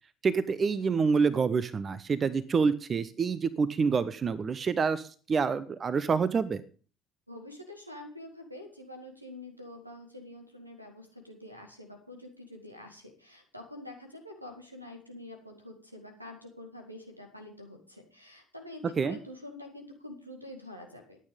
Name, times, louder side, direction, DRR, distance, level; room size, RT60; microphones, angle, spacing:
voice 1, 0.2-6.6 19.0-19.2, right 5 dB, 35° right, 16 dB, 0.8 m, -27 dB
voice 2, 7.3-21.2, left 1 dB, 90° right, 4 dB, 2.1 m, -46 dB
13.0 x 9.1 x 5.2 m, 0.40 s
figure-of-eight pair, 55°, 0 cm